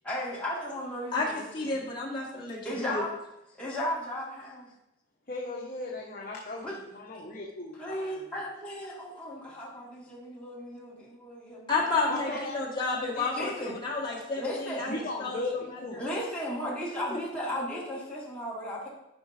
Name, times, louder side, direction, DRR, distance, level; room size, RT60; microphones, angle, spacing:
voice 1, 0.0-1.7 2.6-3.1 3.6-4.7 6.6-6.7 7.8-12.4 13.3-14.9 16.0-18.9, equal, 5° left, -7 dB, 2.0 m, -35 dB
voice 2, 1.5-3.0 11.7-15.4 17.1-17.2, left 3 dB, 25° left, -5 dB, 1.8 m, -31 dB
voice 3, 5.3-8.4 12.1-12.6 13.1-13.3 14.9-16.0, left 2 dB, 50° left, -3 dB, 1.0 m, -37 dB
11.0 x 5.1 x 2.7 m, 0.90 s
head